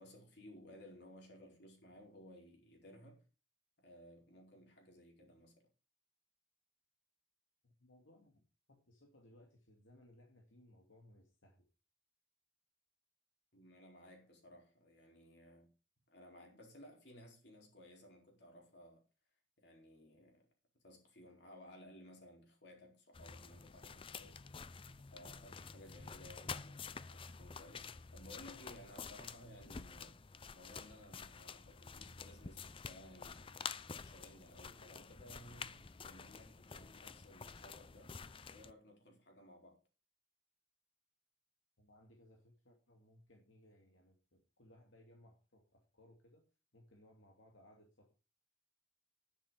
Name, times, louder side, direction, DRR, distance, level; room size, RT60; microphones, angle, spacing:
voice 1, 0.0-3.2 3.8-5.7 13.5-15.7 16.1-19.0 19.6-20.5 20.8-24.4 25.1-30.2 30.5-38.2 38.5-39.8, left 1 dB, 60° left, 4.7 m, -58 dB
voice 2, 7.6-11.7 41.8-46.4 46.7-48.1, left 1 dB, 80° left, 2.6 m, -64 dB
sound 1, 23.1-38.7, left 5 dB, 25° left, 0.5 m, -49 dB
10.5 x 10.0 x 5.0 m
head